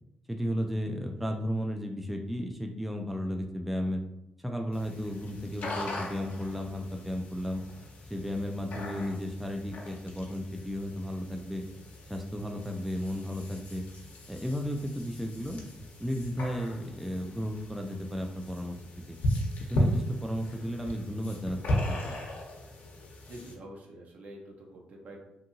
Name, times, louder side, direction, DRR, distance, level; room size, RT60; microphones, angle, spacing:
voice 1, 0.3-4.0 4.4-7.6 8.1-11.6 12.1-13.9 14.3-15.6 16.0-18.8 19.1-19.2 19.6-22.1, equal, 5° right, 2 dB, 0.3 m, -34 dB
sound 1, 4.7-23.5, equal, 65° left, 0.6 m, -37 dB
voice 2, 23.3-25.2, right 1 dB, 65° right, 0 dB, 0.7 m, -46 dB
2.7 x 2.6 x 2.6 m, 0.85 s
cardioid pair, 75°, 3 cm